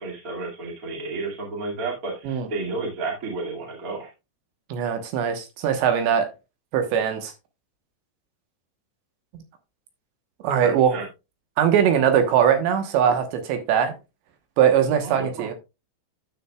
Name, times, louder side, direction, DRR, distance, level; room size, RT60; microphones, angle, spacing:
voice 1, 0.0-4.1 10.6-11.0 15.0-15.5, right 3 dB, 50° right, 1.0 m, -32 dB
voice 2, 4.7-6.3 6.7-7.3 10.4-11.0 11.6-13.9 14.6-15.5, right 8 dB, 70° right, 3.1 m, -21 dB
12.5 x 7.3 x 2.3 m
omnidirectional pair, 5.7 m